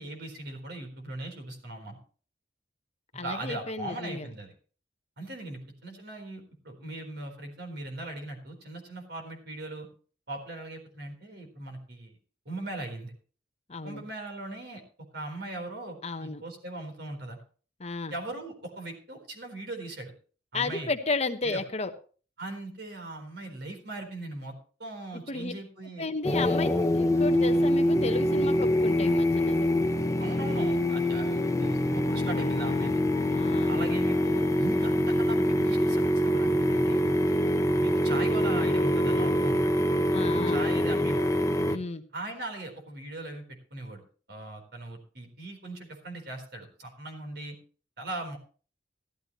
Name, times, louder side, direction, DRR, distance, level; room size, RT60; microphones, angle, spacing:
voice 1, 0.0-2.0 3.2-4.5 5.2-9.9 10.3-12.1 12.5-13.1 13.8-14.8 15.1-17.4 18.1-20.1 20.5-20.9 21.4-21.6 22.4-24.5 24.8-26.1 30.2-33.0 33.7-37.2 37.8-39.8 40.5-41.3 42.1-44.0 44.3-47.6 48.0-48.4, right 2 dB, 65° right, 4 dB, 4.1 m, -39 dB
voice 2, 3.1-4.3 13.7-14.0 16.0-16.4 17.8-18.1 20.5-21.9 25.3-25.5 26.0-29.7 33.3-33.7 40.1-40.6 41.6-42.0, left 3 dB, 35° left, 8 dB, 1.0 m, -33 dB
sound 1, 26.2-41.8, left 1 dB, 20° left, 0.7 m, -25 dB
15.0 x 13.0 x 3.1 m, 0.38 s
head